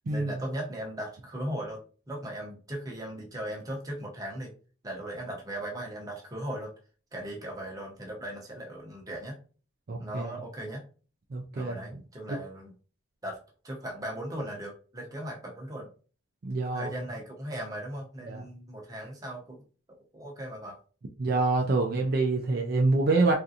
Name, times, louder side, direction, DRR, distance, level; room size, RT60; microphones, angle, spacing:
voice 1, 0.1-1.8 2.1-4.5 4.8-6.7 7.1-9.4 10.0-10.9 11.6-12.7 13.2-13.4 13.6-15.9 16.7-19.6 20.1-20.8, right 1 dB, 15° right, -1 dB, 0.7 m, -38 dB
voice 2, 9.9-10.3 11.3-12.0 16.4-16.9 18.3-18.4 21.2-23.3, right 3 dB, 45° right, 1 dB, 0.4 m, -26 dB
3.6 x 2.5 x 2.7 m, 0.39 s
head